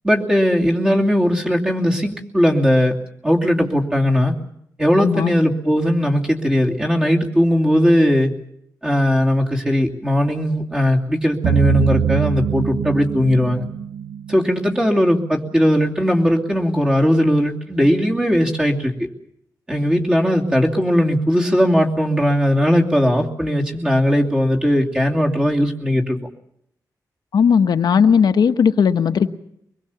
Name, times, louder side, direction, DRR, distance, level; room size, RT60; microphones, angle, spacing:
voice 1, 0.0-2.9 3.2-4.3 4.8-8.3 8.8-13.7 14.3-19.1 19.7-26.2, equal, 15° right, -1 dB, 2.7 m, -18 dB
voice 2, 5.0-5.4 27.3-29.3, left 6 dB, 80° left, 9 dB, 1.2 m, -16 dB
sound 1, 11.4-15.2, right 9 dB, 80° right, 2.3 m, -23 dB
24.5 x 21.5 x 7.1 m, 0.74 s
wide cardioid pair, 165°, 7 cm